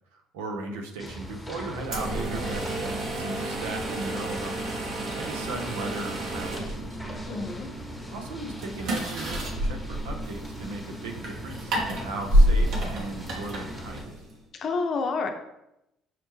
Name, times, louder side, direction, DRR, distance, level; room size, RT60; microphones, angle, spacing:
voice 1, 0.3-4.6 5.1-7.0 8.1-14.1, right 3 dB, 85° right, 4 dB, 0.5 m, -37 dB
sound 1, 1.0-14.0, left 1 dB, 5° left, 1.0 m, -41 dB
sound 2, 1.8-14.4, right 1 dB, 65° right, 0.9 m, -29 dB
voice 2, 7.3-7.7 14.5-15.3, left 4 dB, 55° left, 5 dB, 0.6 m, -28 dB
5.7 x 2.1 x 3.1 m, 0.85 s
supercardioid pair, 65°, 0 cm